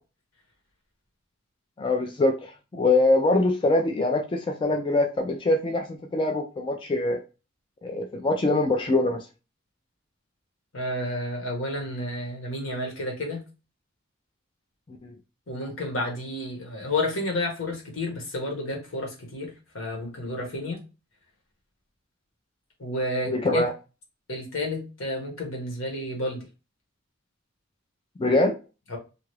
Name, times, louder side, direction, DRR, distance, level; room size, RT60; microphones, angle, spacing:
voice 1, 1.8-7.2 7.8-9.2 14.9-15.1 23.3-23.7 28.2-28.6, left 2 dB, 25° left, 4 dB, 0.3 m, -23 dB
voice 2, 10.7-13.4 15.5-20.8 22.8-23.6 24.3-26.4 28.9-29.0, left 1 dB, 80° left, 1 dB, 1.1 m, -31 dB
2.8 x 2.4 x 3.1 m, 0.31 s
head